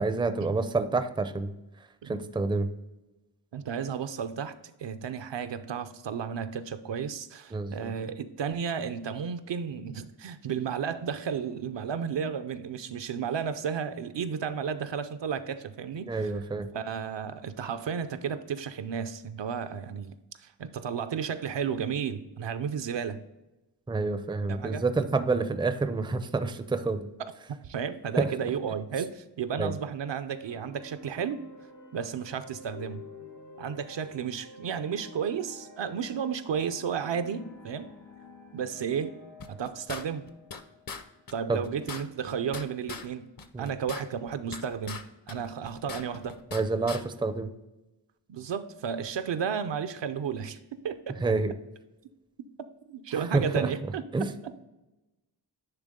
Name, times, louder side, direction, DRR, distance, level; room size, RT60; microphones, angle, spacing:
voice 1, 0.0-1.5 2.0-2.7 7.5-7.9 16.1-16.7 23.9-27.1 28.2-28.3 29.6-29.7 41.5-41.6 43.5-43.7 46.5-47.5 51.2-51.5 53.1-53.7 54.1-54.3, right 3 dB, 10° right, 10 dB, 0.4 m, -28 dB
voice 2, 3.5-16.3 16.7-23.2 24.5-24.8 27.2-27.3 27.6-31.4 31.9-33.0 33.6-37.9 38.5-39.2 39.5-40.3 41.3-43.3 43.6-45.0 45.3-46.4 48.3-51.2 52.9-54.5, right 7 dB, 70° right, 11 dB, 0.6 m, -33 dB
sound 1, 30.4-41.7, left 3 dB, 90° left, 1.7 m, -50 dB
sound 2, 39.4-40.6 40.9-41.0 41.3-41.4 41.6-43.1 43.4-45.0 45.3-46.6 46.9-47.0, left 5 dB, 50° left, 0.7 m, -40 dB
10.0 x 3.5 x 3.6 m, 1.0 s
wide cardioid pair, 85°, 46 cm